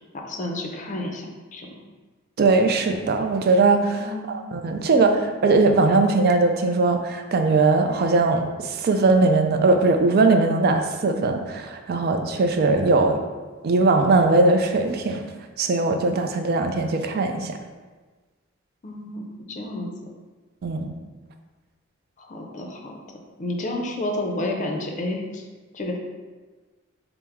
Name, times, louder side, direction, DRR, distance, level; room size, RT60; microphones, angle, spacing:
voice 1, 0.0-1.7 4.0-4.3 18.8-19.9 22.2-23.0 23.4-25.4 25.7-26.0, left 1 dB, 40° left, 2 dB, 0.5 m, -30 dB
voice 2, 2.4-13.2 13.6-15.2 15.6-17.5 20.6-20.9, right 3 dB, 50° right, 5 dB, 0.4 m, -20 dB
4.4 x 2.0 x 3.5 m, 1.3 s
head